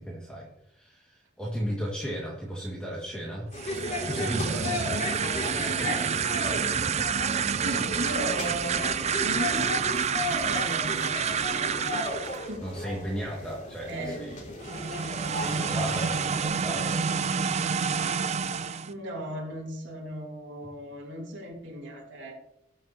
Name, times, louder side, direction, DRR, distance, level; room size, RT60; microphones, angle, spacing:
voice 1, 0.0-3.5 4.0-4.8 12.6-14.4 15.2-17.0, equal, 5° left, -5 dB, 2.0 m, -35 dB
sound 1, 3.5-16.5, left 2 dB, 40° left, 2.7 m, -36 dB
sound 2, 3.5-12.5 14.6-18.9, right 6 dB, 35° right, 0.5 m, -28 dB
voice 2, 5.7-6.1 7.6-8.9 9.2-9.7 10.0-12.1 12.5-12.6 13.9-14.3 18.9-22.3, right 1 dB, 65° right, -3 dB, 3.0 m, -36 dB
19.0 x 7.3 x 2.9 m, 0.83 s
head